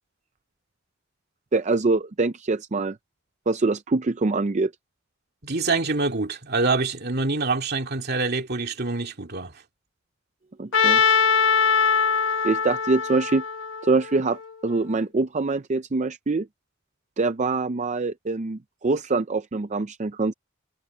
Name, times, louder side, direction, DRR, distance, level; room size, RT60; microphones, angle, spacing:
voice 1, 1.5-3.0 3.5-4.7 10.6-11.0 12.4-13.4 13.8-16.5 17.2-20.3, right 3 dB, 35° right, 0.5 m, -24 dB
voice 2, 5.4-9.5, right 3 dB, 55° right, 2.6 m, -25 dB
Trumpet, 10.7-14.8, left 6 dB, 75° left, 1.5 m, -22 dB
head